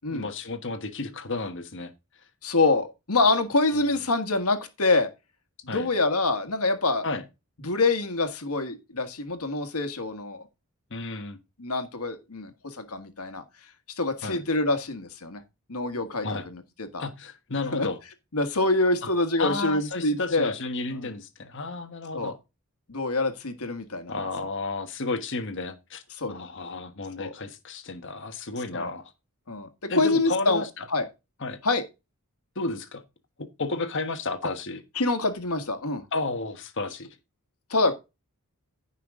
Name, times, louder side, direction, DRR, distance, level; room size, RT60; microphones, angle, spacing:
voice 1, 0.1-1.9 3.8-4.0 5.7-5.9 7.0-7.2 10.9-11.4 14.2-14.4 16.2-16.4 17.0-18.0 19.0-19.1 19.4-22.3 24.1-26.0 26.3-29.1 29.9-30.8 31.4-31.6 32.5-33.0 33.6-34.8 36.1-37.1, left 3 dB, 55° left, 1.3 m, -32 dB
voice 2, 2.4-5.1 5.6-7.1 7.6-10.4 11.6-13.4 14.0-15.4 15.7-17.0 17.7-17.9 18.3-20.5 21.0-21.1 22.1-22.3 22.9-24.1 26.2-26.3 27.2-27.3 28.7-28.9 29.5-30.6 30.9-31.1 31.6-31.8 34.9-36.0 37.7-37.9, left 2 dB, 80° left, 1.6 m, -26 dB
15.0 x 5.7 x 3.7 m
head